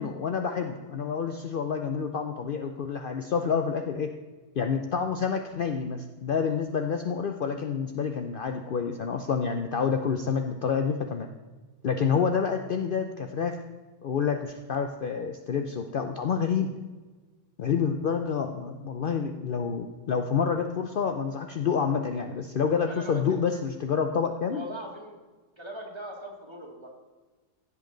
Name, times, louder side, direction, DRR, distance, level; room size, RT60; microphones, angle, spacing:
voice 1, 0.0-4.1 4.6-11.3 11.8-13.6 14.0-16.7 17.6-24.6, left 6 dB, 70° left, 5 dB, 0.5 m, -28 dB
voice 2, 22.8-23.4 24.5-25.2 25.6-26.9, right 1 dB, 15° right, -1 dB, 2.0 m, -40 dB
15.5 x 8.3 x 3.9 m, 1.3 s
omnidirectional pair, 1.7 m